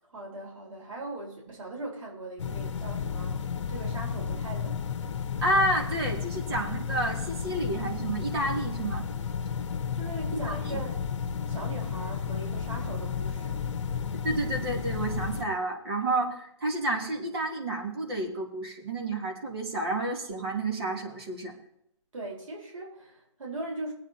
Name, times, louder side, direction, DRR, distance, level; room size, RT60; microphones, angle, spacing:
voice 1, 0.0-4.9 9.9-11.0 11.5-13.7 22.1-23.9, right 2 dB, 90° right, -1 dB, 4.3 m, -40 dB
sound 1, 2.4-15.4, left 6 dB, 65° left, 1.0 m, -32 dB
voice 2, 5.4-9.1 10.3-10.8 14.2-21.5, right 1 dB, 50° right, 0 dB, 2.8 m, -30 dB
21.5 x 8.7 x 2.9 m, 0.77 s
hypercardioid pair, 165°, 16 cm